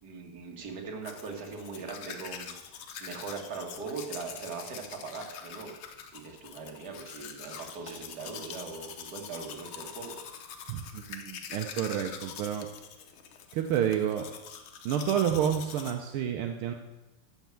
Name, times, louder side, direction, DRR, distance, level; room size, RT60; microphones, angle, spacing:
voice 1, 0.0-2.5 3.0-5.8 6.1-10.2, right 4 dB, 50° right, 1 dB, 2.1 m, -40 dB
Domestic sounds home sounds, 1.0-15.9, left 7 dB, 75° left, 1.7 m, -44 dB
voice 2, 10.7-12.7 13.5-14.3 14.8-16.7, right 9 dB, 80° right, 5 dB, 1.6 m, -29 dB
13.5 x 4.6 x 7.5 m, 1.1 s
omnidirectional pair, 2.4 m